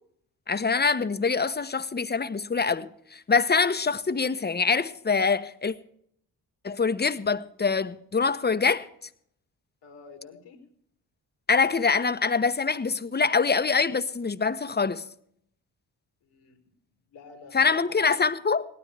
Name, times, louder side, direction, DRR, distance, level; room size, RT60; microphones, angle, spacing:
voice 1, 0.5-5.7 6.6-8.9 11.5-15.0 17.5-18.6, left 5 dB, 25° left, 0.9 m, -24 dB
voice 2, 9.8-10.6 16.2-16.6 17.1-18.3, left 5 dB, 75° left, 2.1 m, -47 dB
18.0 x 13.0 x 3.4 m
hypercardioid pair, 40°, 43 cm